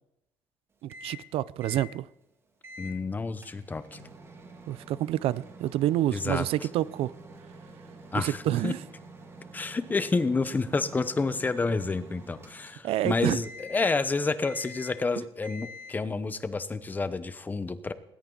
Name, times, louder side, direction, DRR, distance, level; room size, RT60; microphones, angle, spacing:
voice 1, 0.8-2.1 4.7-7.1 8.1-8.8 12.8-13.4, right 13 dB, 65° right, 0.5 m, -28 dB
Microwave oven, 0.9-1.3 1.6-1.9 2.6-3.0 3.4-13.1 13.4-14.1 14.4-15.1 15.4-16.1, equal, 25° right, 2.3 m, -47 dB
voice 2, 2.8-4.0 6.1-6.5 8.1-8.7 9.5-17.9, left 3 dB, 15° left, 0.9 m, -29 dB
19.5 x 18.5 x 3.9 m
cardioid pair, 160°, 10 cm